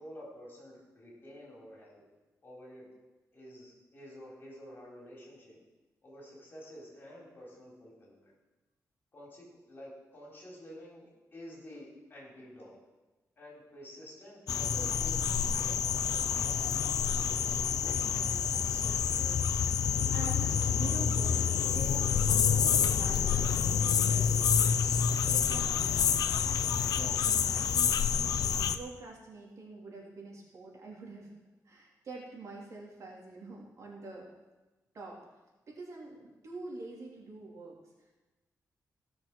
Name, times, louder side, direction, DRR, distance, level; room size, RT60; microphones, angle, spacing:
voice 1, 0.0-2.0 2.4-2.9 3.3-5.6 6.0-8.3 9.1-12.8 13.4-15.9, equal, 35° left, -3 dB, 4.1 m, -50 dB
sound 1, 14.5-28.8, left 7 dB, 75° left, 0.6 m, -28 dB
voice 2, 18.0-26.5 27.0-31.3 31.6-34.3 34.9-35.2 35.7-38.1, right 3 dB, 55° right, -3 dB, 3.0 m, -47 dB
16.5 x 6.2 x 6.2 m, 1.1 s
wide cardioid pair, 150°, 6 cm